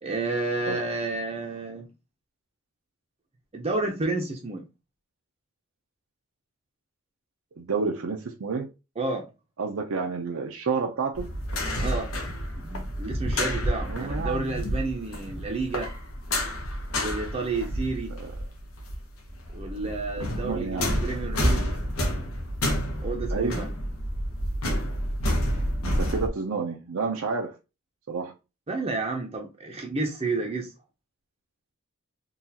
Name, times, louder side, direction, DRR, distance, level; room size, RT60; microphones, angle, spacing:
voice 1, 0.0-1.9 3.5-4.6 9.0-9.3 11.8-12.1 12.5-15.9 16.9-18.1 19.5-21.7 23.0-23.7 28.7-30.7, right 3 dB, 30° right, 0.6 m, -30 dB
voice 2, 7.6-8.7 9.6-11.3 13.9-14.6 18.1-18.3 20.3-21.0 23.3-23.6 25.8-27.5 28.1-28.3, right 4 dB, 70° right, 0.5 m, -30 dB
sound 1, 11.1-19.0 19.3-26.3, equal, 85° left, 0.9 m, -29 dB
3.9 x 2.3 x 2.8 m
head